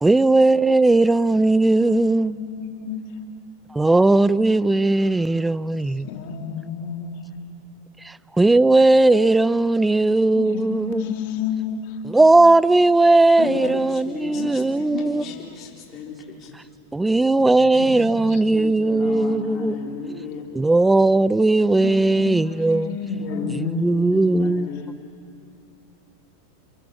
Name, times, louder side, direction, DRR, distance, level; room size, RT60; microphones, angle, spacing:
voice 1, 0.0-2.4 3.7-6.1 8.0-11.1 12.1-15.2 16.9-19.8 20.5-23.0 23.7-24.7, right 2 dB, 10° right, 0.6 m, -18 dB
voice 2, 1.8-3.0 6.0-7.1 10.3-11.9 13.4-13.7 14.3-14.6 14.9-15.4 17.4-17.5 17.8-18.4 18.9-19.8 21.8-24.6, left 6 dB, 60° left, 3.3 m, -31 dB
voice 3, 13.4-16.1 16.4-16.5 18.5-20.4 23.2-23.5 24.1-24.9, left 5 dB, 40° left, 3.8 m, -35 dB
28.5 x 23.5 x 7.6 m
hypercardioid pair, 105°, 0 cm